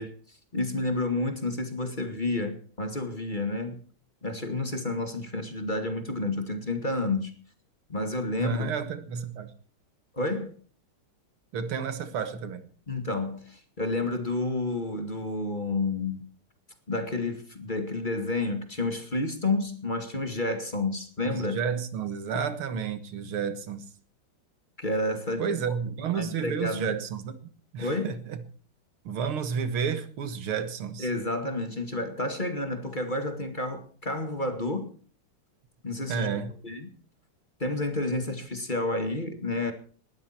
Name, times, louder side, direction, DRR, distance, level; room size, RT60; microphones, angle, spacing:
voice 1, 0.0-3.8 4.2-7.3 7.9-8.7 10.1-10.5 12.9-16.3 16.9-21.6 24.8-25.6 26.1-27.0 27.8-28.1 31.0-34.9 35.8-36.3 36.6-36.9 37.6-39.7, left 2 dB, 25° left, 2.1 m, -30 dB
voice 2, 8.4-9.5 11.5-12.6 21.2-23.9 25.4-28.4 29.0-31.1 36.1-36.6, right 6 dB, 85° right, 2.4 m, -31 dB
19.5 x 13.0 x 4.4 m
omnidirectional pair, 2.3 m